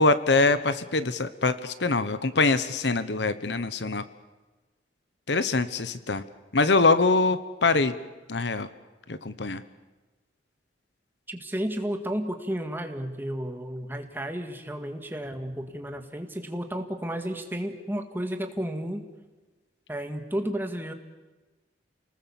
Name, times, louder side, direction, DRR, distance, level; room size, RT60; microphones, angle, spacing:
voice 1, 0.0-4.0 5.3-6.2 6.5-7.9 8.3-8.7 9.1-9.6, left 3 dB, 70° left, 13 dB, 1.1 m, -23 dB
voice 2, 11.3-19.0 19.9-20.9, equal, 10° right, 5 dB, 1.9 m, -32 dB
29.5 x 19.5 x 7.3 m, 1.2 s
head